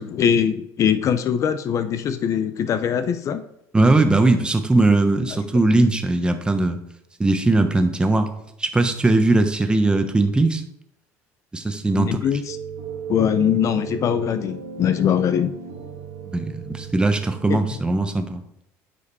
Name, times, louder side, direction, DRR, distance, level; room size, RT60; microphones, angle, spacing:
voice 1, 0.0-3.4 5.3-5.4 11.9-12.6 13.1-15.6 17.5-17.6, left 8 dB, 45° left, 11 dB, 0.6 m, -22 dB
voice 2, 3.7-6.8 7.2-8.3 8.6-10.6 11.5-12.2 16.3-18.4, right 2 dB, 10° right, 7 dB, 1.1 m, -19 dB
sound 1, 12.5-17.8, right 7 dB, 80° right, 1.5 m, -35 dB
9.9 x 5.1 x 4.2 m, 0.76 s
supercardioid pair, 105°, 7 cm